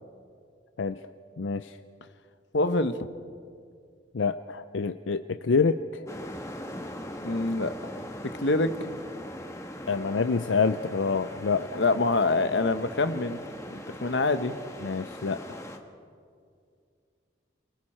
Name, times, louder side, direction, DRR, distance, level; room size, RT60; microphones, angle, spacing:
voice 1, 1.4-1.8 4.1-6.1 9.9-11.8 14.8-15.6, left 5 dB, 90° left, 10 dB, 0.5 m, -27 dB
voice 2, 2.5-3.0 7.2-7.9 8.4-8.7 11.6-13.4 13.7-14.5, left 2 dB, 70° left, 10 dB, 1.0 m, -25 dB
sound 1, 6.1-15.8, left 1 dB, 15° left, 1.5 m, -41 dB
30.0 x 23.0 x 4.4 m, 2.3 s
head